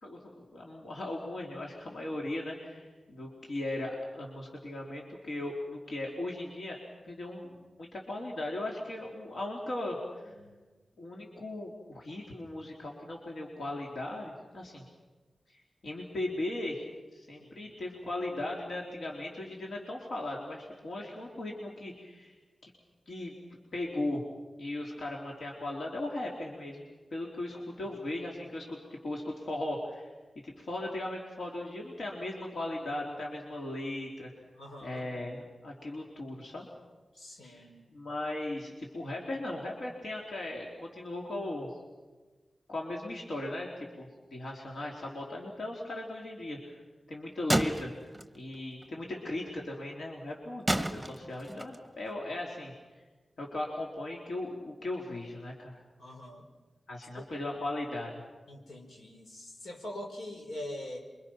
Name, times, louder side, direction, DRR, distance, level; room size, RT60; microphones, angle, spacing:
voice 1, 0.0-6.8 7.0-10.0 10.2-10.3 11.0-14.8 15.5-16.8 17.1-22.4 23.1-23.3 23.7-24.2 24.6-26.8 27.1-30.1 30.4-34.3 34.8-36.7 37.4-37.7 37.9-41.8 42.7-46.8 47.1-47.9 48.3-53.0 53.4-55.8 56.9-58.2, left 1 dB, 70° left, -1 dB, 3.6 m, -38 dB
voice 2, 10.2-10.7 17.4-17.7 27.8-28.0 34.6-35.1 37.1-37.9 56.0-56.5 57.2-57.3 58.5-61.0, left 1 dB, 90° left, 1 dB, 4.7 m, -44 dB
sound 1, 47.5-48.6 48.8-48.9 50.7-51.9, right 1 dB, 5° right, 1.1 m, -30 dB
28.0 x 24.0 x 5.9 m, 1.3 s
wide cardioid pair, 140°, 0 cm